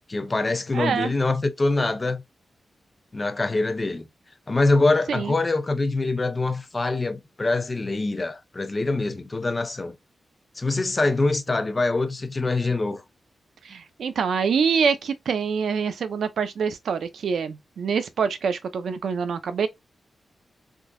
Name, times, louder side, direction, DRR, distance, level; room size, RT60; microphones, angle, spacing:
voice 1, 0.1-2.2 3.1-4.1 4.5-10.0 10.6-13.0, left 2 dB, 25° left, 0.5 m, -24 dB
voice 2, 0.7-1.1 5.1-5.4 13.6-19.7, right 6 dB, 90° right, 0.5 m, -25 dB
3.6 x 2.8 x 2.5 m
wide cardioid pair, 145°, 0 cm